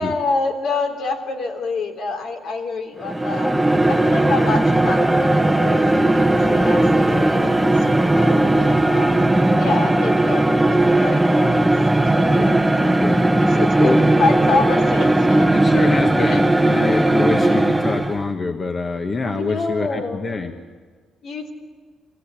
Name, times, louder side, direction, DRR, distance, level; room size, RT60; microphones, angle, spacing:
voice 1, 0.0-3.5 3.9-12.9 13.4-15.5 16.2-16.4 16.9-17.0 17.5-17.6 19.2-20.2 21.2-21.5, left 3 dB, 70° left, 3 dB, 3.5 m, -27 dB
sound 1, 3.0-18.3, right 1 dB, 10° right, 1.0 m, -17 dB
voice 2, 12.2-13.2 13.8-14.0 15.5-20.5, left 3 dB, 35° left, 5 dB, 1.3 m, -25 dB
24.0 x 17.0 x 8.6 m, 1.5 s
cardioid pair, 90°, 0 cm